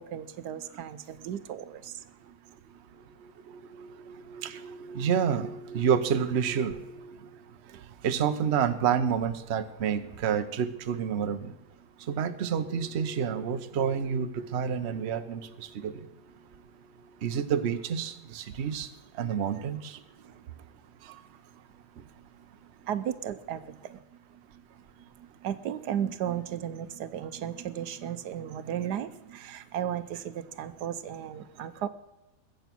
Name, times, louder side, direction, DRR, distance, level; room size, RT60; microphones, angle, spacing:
voice 1, 0.0-2.0 7.7-7.8 19.2-19.6 20.2-20.3 22.9-24.0 25.4-31.9, right 10 dB, 80° right, 1.3 m, -35 dB
voice 2, 3.7-7.2 8.0-11.5 12.1-16.0 17.2-18.9 19.2-19.8, right 7 dB, 50° right, 1.0 m, -29 dB
21.0 x 8.1 x 6.0 m
omnidirectional pair, 1.8 m